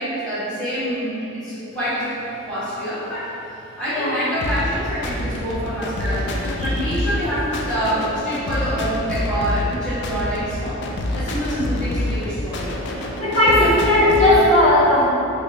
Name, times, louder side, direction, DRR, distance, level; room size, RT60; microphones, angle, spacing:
voice 1, 0.0-2.1 2.4-10.8 11.1-12.7 13.4-13.7 14.2-14.5, equal, 5° left, -16 dB, 1.4 m, -26 dB
sound 1, 4.4-14.4, left 1 dB, 55° left, 0.3 m, -27 dB
voice 2, 6.6-6.9 13.2-15.0, left 1 dB, 30° left, -15 dB, 0.8 m, -16 dB
3.5 x 2.9 x 2.6 m, 2.9 s
head